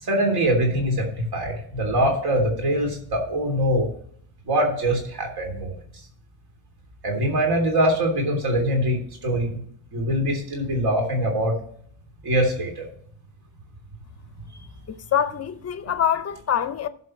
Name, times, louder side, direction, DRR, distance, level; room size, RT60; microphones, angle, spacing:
voice 1, 0.0-3.9 4.5-5.7 7.0-9.6 9.9-11.6 12.2-12.9, right 1 dB, 50° right, 3.3 m, -23 dB
voice 2, 14.9-16.9, left 9 dB, 30° left, 0.7 m, -25 dB
15.5 x 7.0 x 3.2 m
cardioid pair, 175°, 48 cm